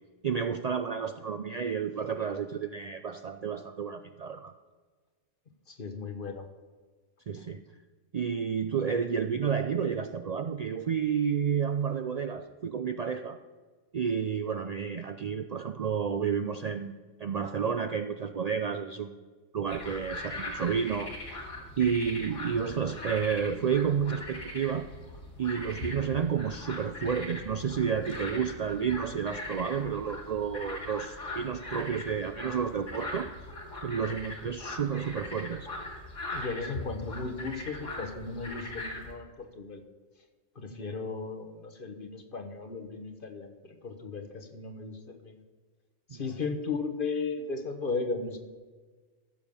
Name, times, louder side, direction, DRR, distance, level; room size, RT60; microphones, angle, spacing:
voice 1, 0.2-4.5 7.3-7.6 8.1-13.4 13.9-16.9 17.2-19.1 19.5-21.1 21.8-24.9 25.4-33.3 33.8-35.7 40.7-40.8 46.1-46.2, right 7 dB, 85° right, 8 dB, 0.3 m, -30 dB
voice 2, 5.7-6.4 36.3-39.8 40.5-45.4 46.1-48.4, left 4 dB, 45° left, 6 dB, 1.3 m, -36 dB
sound 1, 19.7-39.1, left 1 dB, 75° left, 2.7 m, -41 dB
14.5 x 7.1 x 5.5 m, 1.4 s
omnidirectional pair, 1.3 m